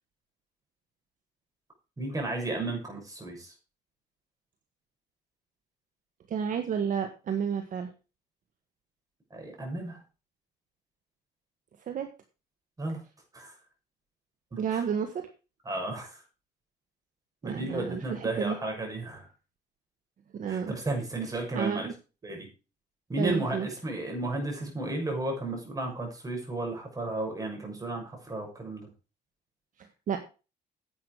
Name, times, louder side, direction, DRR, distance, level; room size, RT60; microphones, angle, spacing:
voice 1, 2.0-3.5 9.3-10.0 12.8-13.0 13.3-13.5 14.5-14.8 15.6-16.2 17.4-19.3 20.5-21.9 22.2-22.5 23.1-28.9, right 2 dB, 20° right, 2 dB, 6.4 m, -33 dB
voice 2, 6.3-7.9 11.9-12.1 14.6-15.3 17.4-18.6 20.3-20.7 21.5-21.9 23.2-23.7 30.1-30.2, right 7 dB, 50° right, 6 dB, 1.6 m, -31 dB
10.5 x 8.5 x 4.9 m, 0.33 s
cardioid pair, 110°, 17 cm